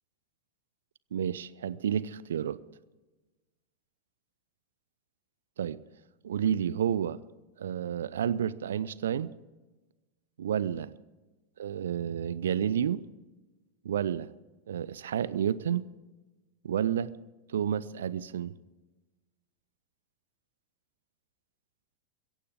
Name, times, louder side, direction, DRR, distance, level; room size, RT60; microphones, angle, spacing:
voice 1, 1.1-2.6 5.6-5.8 6.2-7.2 7.6-9.3 10.4-10.9 11.6-13.0 13.8-14.3 14.7-15.9 16.6-17.1 17.5-18.5, right 9 dB, 65° right, 19 dB, 0.7 m, -30 dB
22.0 x 16.5 x 3.6 m, 1.2 s
figure-of-eight pair, 90°, 0 cm